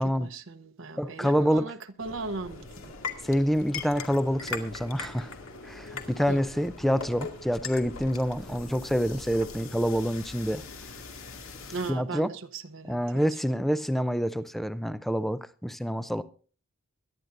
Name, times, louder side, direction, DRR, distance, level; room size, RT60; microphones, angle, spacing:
voice 1, 0.0-2.9 6.3-6.4 11.7-13.6, right 3 dB, 60° right, 0.9 m, -38 dB
voice 2, 1.0-1.7 3.2-5.3 5.6-10.6 11.9-12.3 12.9-16.2, equal, ahead, 0.5 m, -27 dB
sound 1, 2.0-11.9, left 4 dB, 65° left, 2.2 m, -40 dB
23.0 x 11.5 x 2.6 m
head